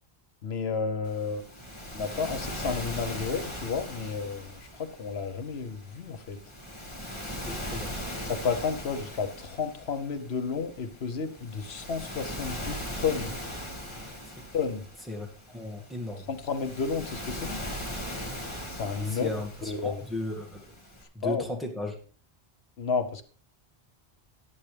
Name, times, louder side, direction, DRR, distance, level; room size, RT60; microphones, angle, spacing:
voice 1, 0.4-1.4 1.9-6.4 8.2-13.4 14.5-14.8 16.3-17.6 18.7-19.3 19.7-20.0 21.2-21.4 22.8-23.2, left 5 dB, 85° left, 9 dB, 1.2 m, -31 dB
Waves surf, 1.0-21.0, equal, 30° left, 2.3 m, -39 dB
voice 2, 7.5-8.0 14.4-14.5 15.1-16.3 19.1-20.7 21.1-22.0, left 1 dB, ahead, 1 dB, 2.0 m, -36 dB
14.5 x 9.6 x 3.4 m, 0.39 s
omnidirectional pair, 1.0 m